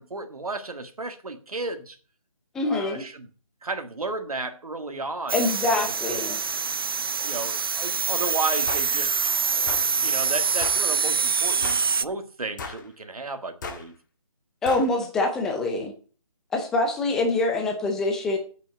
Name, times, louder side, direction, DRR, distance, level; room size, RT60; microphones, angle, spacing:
voice 1, 0.0-2.0 2.7-3.3 3.6-5.3 5.6-5.9 6.1-6.4 7.2-9.3 10.0-13.9, right 3 dB, 85° right, 1.8 m, -33 dB
voice 2, 2.5-3.0 5.3-6.4 14.6-15.9 16.5-18.4, left 2 dB, 5° left, 0.6 m, -25 dB
sound 1, 5.3-12.0, right 5 dB, 40° right, 0.5 m, -25 dB
sound 2, 8.7-8.9 9.7-9.9 10.6-10.8 11.6-11.9 12.6-12.9 13.6-13.8 14.7-14.9, left 4 dB, 35° left, 1.6 m, -35 dB
8.6 x 6.2 x 7.8 m
figure-of-eight pair, 165°, 18 cm